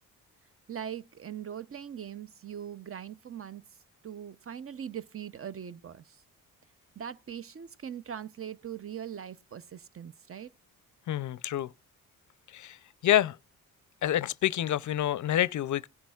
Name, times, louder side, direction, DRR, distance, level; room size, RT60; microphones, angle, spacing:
voice 1, 0.7-3.6 4.0-6.2 7.0-10.5, right 9 dB, 40° right, 0.6 m, -41 dB
voice 2, 11.1-11.7 12.5-12.8 13.0-13.4 14.0-15.9, left 12 dB, 55° left, 0.5 m, -27 dB
17.0 x 10.0 x 2.3 m
supercardioid pair, 65°, 36 cm